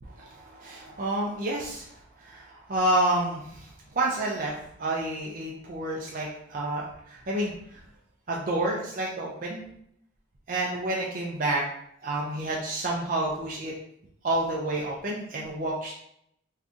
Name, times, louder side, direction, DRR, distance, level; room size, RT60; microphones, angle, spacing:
voice 1, 0.0-3.7 4.0-4.5 4.8-7.5 8.3-9.6 10.5-11.6 12.0-13.7 14.2-15.9, right 1 dB, 40° right, -3 dB, 0.4 m, -29 dB
3.6 x 2.6 x 2.4 m, 0.73 s
head